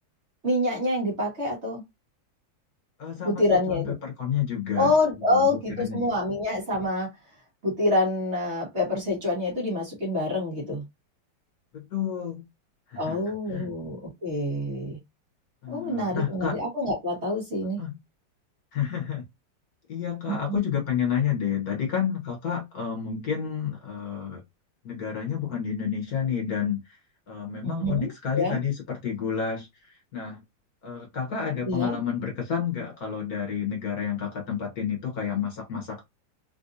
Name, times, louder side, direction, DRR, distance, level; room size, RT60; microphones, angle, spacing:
voice 1, 0.4-1.8 3.2-3.9 4.8-7.1 7.6-10.8 13.0-15.0 15.7-17.8 20.3-20.6 27.6-28.6 31.6-31.9, left 1 dB, 40° right, 1.5 m, -26 dB
voice 2, 3.0-4.9 5.3-6.1 11.7-12.4 12.9-13.2 13.5-13.7 15.6-16.6 17.8-18.0 18.7-19.3 19.9-24.4 24.8-27.0 27.3-30.4 30.8-36.0, left 8 dB, 55° left, 1.3 m, -30 dB
3.8 x 2.5 x 2.6 m
omnidirectional pair, 2.1 m